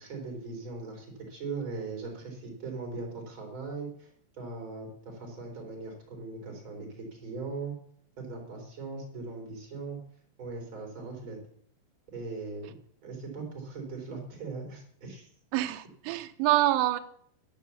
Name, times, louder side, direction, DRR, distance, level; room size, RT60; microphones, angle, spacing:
voice 1, 0.0-4.1 4.4-7.7 8.2-10.0 10.4-11.4 12.1-12.7 13.0-15.3, right 3 dB, 25° right, 2 dB, 4.2 m, -39 dB
voice 2, 15.5-17.0, right 15 dB, 75° right, 10 dB, 2.8 m, -26 dB
12.5 x 10.5 x 7.1 m, 0.64 s
omnidirectional pair, 5.4 m